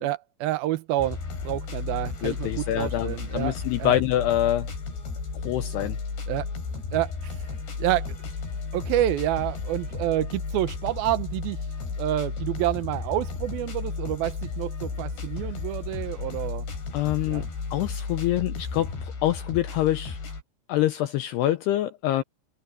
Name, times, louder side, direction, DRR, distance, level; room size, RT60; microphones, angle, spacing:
voice 1, 0.0-1.2 1.4-4.0 6.3-6.5 6.9-7.4 7.8-8.1 8.7-11.6 12.0-16.7 17.3-17.5, right 14 dB, 85° right, 2.1 m, -28 dB
sound 1, 1.0-20.4, left 4 dB, 55° left, 8.7 m, -33 dB
voice 2, 2.2-4.7 5.4-6.0 16.9-17.4 17.7-18.9 19.2-20.2 20.7-22.2, left 13 dB, 85° left, 2.4 m, -25 dB
omnidirectional pair, 5.7 m